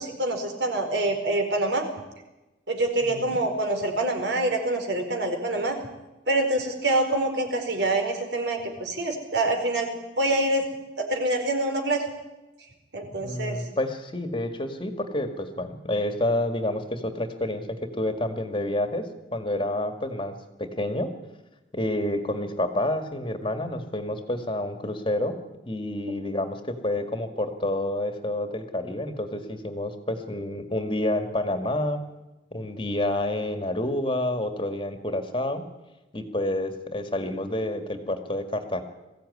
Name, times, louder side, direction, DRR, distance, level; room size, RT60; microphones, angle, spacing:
voice 1, 0.0-1.9 2.7-5.8 6.3-9.9 10.2-10.7 11.0-12.0 12.9-13.6, right 2 dB, 65° right, 4 dB, 4.7 m, -26 dB
voice 2, 3.0-3.4 13.2-21.1 21.7-25.4 25.7-32.0 32.5-35.6 36.1-38.8, left 1 dB, 25° left, 7 dB, 2.0 m, -29 dB
22.0 x 16.0 x 9.8 m, 1.0 s
head